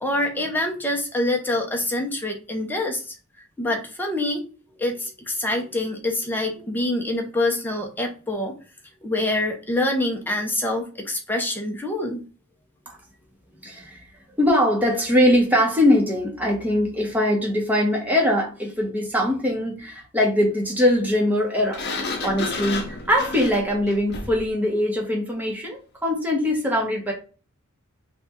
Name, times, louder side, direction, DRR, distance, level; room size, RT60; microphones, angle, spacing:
voice 1, 0.0-3.1 3.6-4.4 4.8-8.5 9.0-12.2, left 1 dB, 10° left, 1 dB, 0.7 m, -25 dB
voice 2, 13.6-14.0 14.3-21.8 22.2-27.1, left 1 dB, 10° right, -1 dB, 1.0 m, -22 dB
Sliding door, 21.7-24.5, left 3 dB, 50° left, 0.8 m, -31 dB
3.3 x 2.4 x 4.3 m, 0.35 s
head